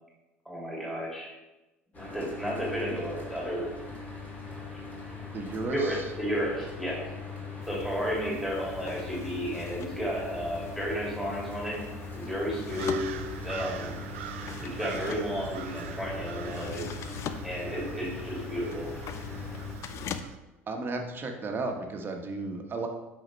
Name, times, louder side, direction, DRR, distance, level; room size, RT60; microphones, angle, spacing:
voice 1, 0.4-1.3 2.0-3.7 5.0-5.2 5.7-7.0 7.7-11.8 12.1-13.1 13.4-14.0 14.6-16.9 17.4-18.9, equal, ahead, -5 dB, 2.7 m, -32 dB
Mechanical fan, 1.9-19.7, left 3 dB, 20° left, 2.7 m, -41 dB
voice 2, 5.3-6.1 19.8-20.0 20.7-22.9, right 3 dB, 30° right, 3 dB, 1.2 m, -34 dB
sound 1, 7.6-20.2, left 8 dB, 40° left, 0.5 m, -43 dB
sound 2, 12.7-20.4, right 9 dB, 65° right, 0.5 m, -42 dB
8.9 x 5.7 x 3.2 m, 1.0 s
figure-of-eight pair, 65°, 7 cm